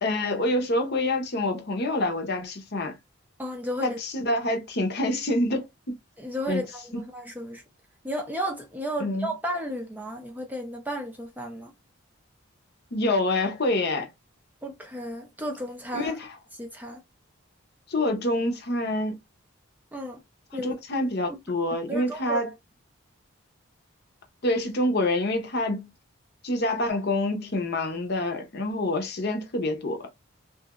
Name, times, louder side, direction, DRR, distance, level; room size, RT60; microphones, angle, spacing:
voice 1, 0.0-3.0 3.8-6.0 6.5-6.6 6.9-7.0 9.0-9.3 12.9-14.1 15.9-16.4 17.9-19.2 20.5-22.5 24.4-25.9 26.4-30.0, left 1 dB, 50° left, 0.7 m, -27 dB
voice 2, 3.4-4.0 6.2-7.6 8.0-11.7 14.6-16.2 16.6-17.0 19.9-20.2 20.5-20.8 21.3-21.4 21.9-22.4, equal, 10° right, 0.5 m, -33 dB
2.9 x 2.8 x 2.4 m
head